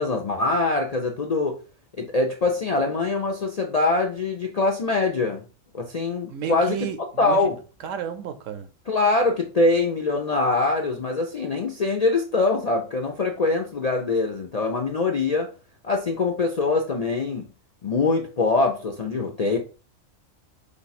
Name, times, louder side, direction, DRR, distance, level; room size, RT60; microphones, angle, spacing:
voice 1, 0.0-1.6 2.0-5.4 5.7-6.9 7.2-7.6 8.9-15.5 15.8-17.5 17.8-19.6, left 3 dB, 55° left, 0.4 m, -23 dB
voice 2, 6.3-7.5 7.8-8.7, right 8 dB, 75° right, 1.0 m, -32 dB
5.2 x 2.3 x 4.1 m
omnidirectional pair, 1.4 m